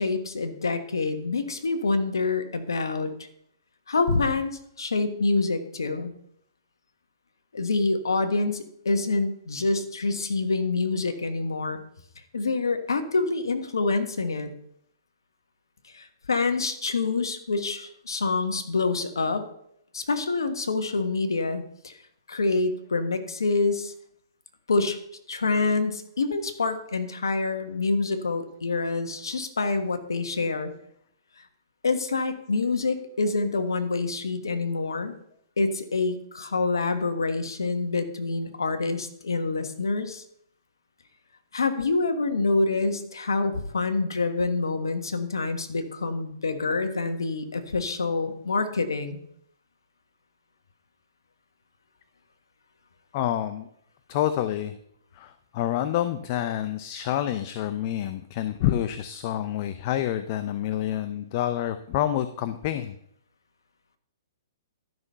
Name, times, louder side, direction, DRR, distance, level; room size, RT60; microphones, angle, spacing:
voice 1, 0.0-3.3 3.9-6.1 7.5-11.8 12.3-14.5 15.9-19.4 19.9-22.0 22.3-23.9 24.7-25.0 25.3-30.7 31.4-31.5 31.8-35.2 35.6-40.2 41.5-49.2, left 3 dB, 90° left, 8 dB, 1.4 m, -26 dB
voice 2, 53.1-53.7 54.1-54.8 55.1-62.9, left 11 dB, 45° left, 11 dB, 0.6 m, -28 dB
12.0 x 6.0 x 5.5 m, 0.69 s
hypercardioid pair, 135°, 2 cm